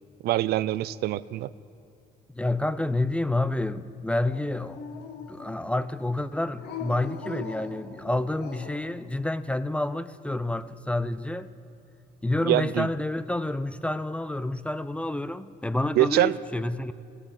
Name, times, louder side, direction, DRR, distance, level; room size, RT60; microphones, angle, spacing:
voice 1, 0.2-1.5 12.4-12.9 16.0-16.4, right 15 dB, 70° right, 0.4 m, -24 dB
voice 2, 2.3-4.8 5.3-11.5 12.2-16.9, left 2 dB, 5° left, 0.4 m, -29 dB
Dog, 4.2-5.7 6.6-8.9, left 6 dB, 75° left, 1.8 m, -40 dB
14.5 x 9.8 x 9.0 m
cardioid pair, 110°, 17 cm